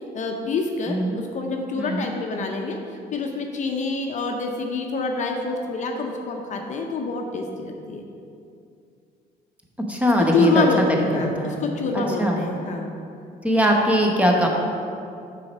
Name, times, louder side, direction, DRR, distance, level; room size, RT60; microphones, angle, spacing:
voice 1, 0.1-2.8 3.1-8.0 10.0-12.9, left 3 dB, 45° left, 3 dB, 0.6 m, -26 dB
voice 2, 0.9-1.2 1.8-2.1 9.9-10.7 11.4-11.8 12.2-12.4 13.4-14.5, equal, 10° right, 0 dB, 0.9 m, -21 dB
6.3 x 4.1 x 5.4 m, 2.5 s
cardioid pair, 110°, 17 cm